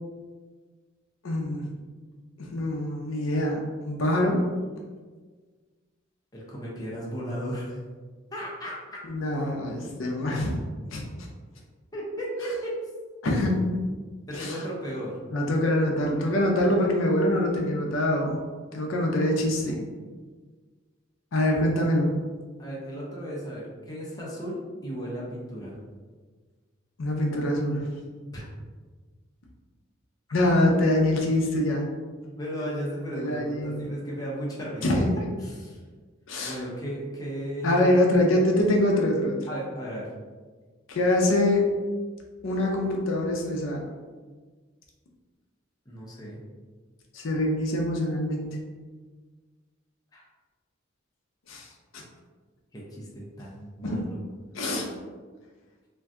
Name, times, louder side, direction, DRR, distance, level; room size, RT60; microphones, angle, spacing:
voice 1, 1.2-1.6 2.5-4.5 9.1-10.5 10.9-11.0 13.2-13.8 14.3-14.5 15.3-18.4 18.7-19.8 21.3-22.1 27.0-27.9 30.3-31.9 33.2-33.8 34.8-35.1 36.3-36.6 37.6-39.4 40.9-41.7 42.4-43.8 47.1-48.4 51.5-51.6 51.9-52.0 53.8-54.1 54.5-54.9, left 1 dB, 85° left, 0 dB, 0.5 m, -24 dB
voice 2, 6.3-7.8 8.3-9.0 11.9-12.8 14.3-15.2 22.6-25.8 28.3-28.4 32.4-35.0 35.4-35.8 36.4-38.3 39.5-40.1 45.9-46.4 50.1-50.2 52.7-54.2, equal, 20° left, -5 dB, 0.6 m, -35 dB
2.6 x 2.2 x 3.5 m, 1.4 s
head